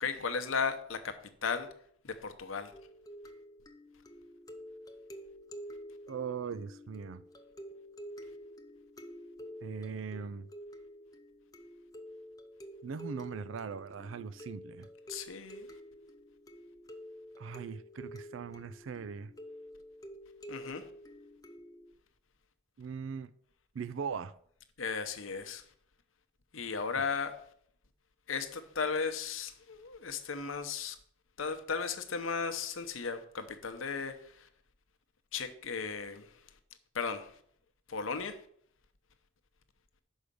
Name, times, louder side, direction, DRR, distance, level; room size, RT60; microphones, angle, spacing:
voice 1, 0.0-1.7 2.0-2.7 15.1-15.7 20.5-20.9 24.8-25.6 26.5-27.4 28.3-31.0 31.4-34.5 35.3-36.4 36.9-37.4 37.9-38.4, left 5 dB, 80° left, 0.8 m, -36 dB
sound 1, 2.7-21.9, equal, 20° left, 0.6 m, -49 dB
voice 2, 6.1-7.2 9.6-10.5 12.8-14.9 17.4-19.3 22.8-23.3 23.7-24.3, right 6 dB, 75° right, 0.4 m, -40 dB
6.3 x 5.0 x 6.8 m
head